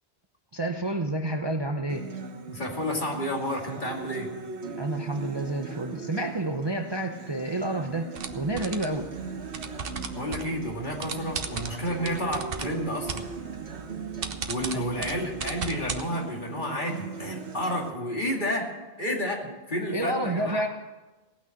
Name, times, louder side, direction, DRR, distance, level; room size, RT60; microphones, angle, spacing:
voice 1, 0.5-2.1 4.7-9.1 14.7-15.3 19.5-19.6 19.9-20.7, right 2 dB, 25° right, 4 dB, 0.7 m, -30 dB
Acoustic guitar, 1.9-17.9, right 4 dB, 75° right, 1.7 m, -40 dB
voice 2, 2.5-4.3 10.2-13.2 14.5-18.7 19.0-19.4 19.7-20.6, equal, 45° left, 0 dB, 2.5 m, -30 dB
sound 1, 8.2-16.0, right 5 dB, 60° right, 1.1 m, -37 dB
17.5 x 6.2 x 8.5 m, 1.2 s
omnidirectional pair, 1.1 m